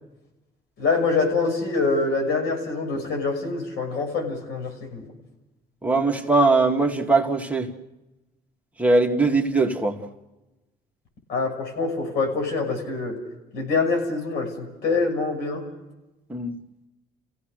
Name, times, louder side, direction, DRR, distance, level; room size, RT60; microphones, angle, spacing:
voice 1, 0.8-5.1 11.3-13.2 13.5-15.6, left 3 dB, 80° left, 3 dB, 6.3 m, -25 dB
voice 2, 5.8-7.7 8.8-10.0 16.3-16.5, right 3 dB, 10° right, 1 dB, 2.1 m, -20 dB
29.5 x 16.5 x 6.6 m, 1.0 s
cardioid pair, 110°, 17 cm